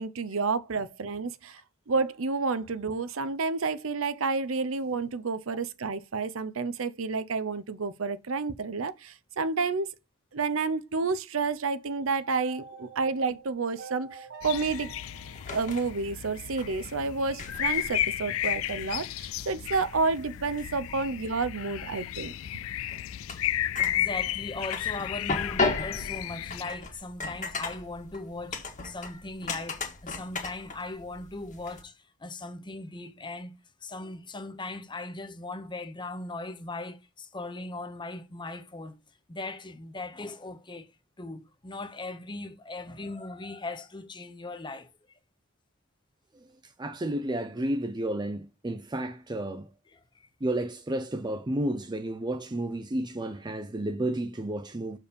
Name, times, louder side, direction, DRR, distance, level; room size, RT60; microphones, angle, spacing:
voice 1, 0.0-1.6 1.9-9.9 10.3-14.9 15.5-22.3, right 4 dB, 75° right, 0.7 m, -30 dB
sound 1, 12.4-16.6, right 5 dB, 55° right, 1.2 m, -47 dB
sound 2, 14.4-26.6, left 13 dB, 70° left, 0.3 m, -33 dB
sound 3, 14.7-31.8, left 3 dB, 40° left, 1.7 m, -38 dB
voice 2, 24.0-33.5 33.8-39.0 39.3-40.9 41.2-45.2 49.9-50.3, left 2 dB, 25° left, 0.9 m, -39 dB
voice 3, 46.8-49.7 50.4-55.0, right 1 dB, 20° right, 0.5 m, -31 dB
6.8 x 4.6 x 5.1 m
head